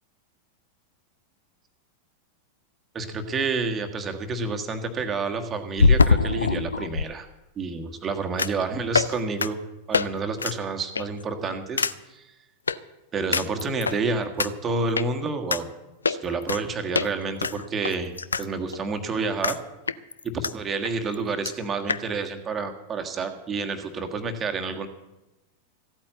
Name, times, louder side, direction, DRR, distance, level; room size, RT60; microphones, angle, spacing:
voice 1, 2.9-7.3 7.6-9.6 9.9-12.3 13.1-15.6 16.1-18.1 18.4-19.6 20.2-24.9, right 4 dB, 25° right, 6 dB, 1.5 m, -29 dB
sound 1, 3.3-3.4 5.8-7.1 8.4-8.6 8.9-9.1 9.4-9.5 9.9-10.1 10.4-10.6 11.0-11.2 11.8-11.9 12.7-12.8 13.3-14.0 14.4-14.5 15.0-15.1 15.5-15.6 16.1-16.6 16.9-17.1 17.4-18.5 18.7-18.8 19.4-19.6 19.9-20.5 20.9-21.0 21.1-21.2 21.5-21.6 21.9-22.0, left 4 dB, 75° left, 0.4 m, -23 dB
15.0 x 8.8 x 7.9 m, 1.0 s
figure-of-eight pair, 90°, 0 cm